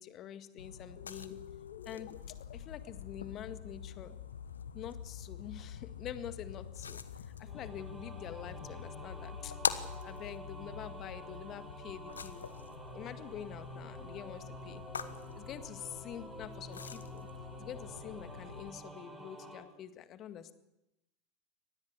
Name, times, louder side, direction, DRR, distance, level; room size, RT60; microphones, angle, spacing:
voice 1, 0.0-1.4 1.9-2.1 2.5-4.2 4.7-7.0 7.4-12.5 12.9-14.8 15.3-17.3 17.6-20.5, left 10 dB, 40° left, 11 dB, 1.9 m, -46 dB
sound 1, 0.6-18.7, left 6 dB, 80° left, 1.3 m, -44 dB
sound 2, 1.0-10.3, left 11 dB, 60° left, 1.5 m, -50 dB
sound 3, 7.4-19.6, right 1 dB, 10° right, 7.7 m, -49 dB
24.5 x 19.5 x 8.2 m, 0.91 s
figure-of-eight pair, 80°, 0 cm